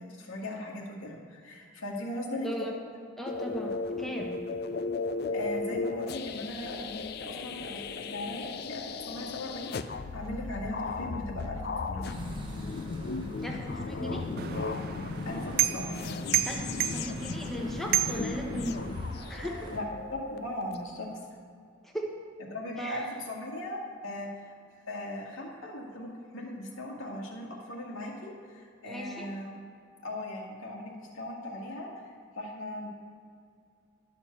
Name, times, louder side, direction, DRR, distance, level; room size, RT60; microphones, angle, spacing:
voice 1, 0.0-2.7 5.3-12.2 15.2-16.1 19.7-19.9 20.3-21.2 22.5-24.5 24.9-29.6 30.0-32.9, left 1 dB, 85° left, -2 dB, 1.9 m, -38 dB
voice 2, 2.4-2.7 3.2-4.4 13.4-14.3 16.5-18.8 19.3-19.7 21.8-22.1 22.8-23.1 28.9-29.3, equal, ahead, -1 dB, 1.0 m, -37 dB
sound 1, 3.3-20.8, left 4 dB, 50° left, 0.4 m, -36 dB
sound 2, 12.0-19.8, right 1 dB, 25° right, 1.0 m, -45 dB
sound 3, 14.4-19.1, right 11 dB, 50° right, 0.3 m, -32 dB
12.0 x 4.5 x 6.7 m, 2.3 s
head